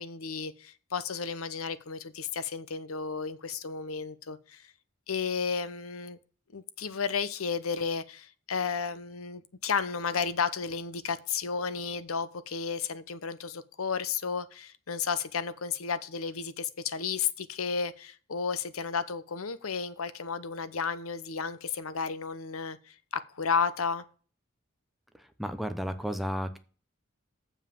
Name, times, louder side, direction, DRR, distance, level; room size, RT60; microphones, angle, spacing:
voice 1, 0.0-4.7 5.1-6.2 6.5-23.0 23.3-24.0, left 6 dB, 90° left, 0.9 m, -33 dB
voice 2, 25.4-26.6, equal, ahead, 0.8 m, -32 dB
7.3 x 5.4 x 7.1 m
head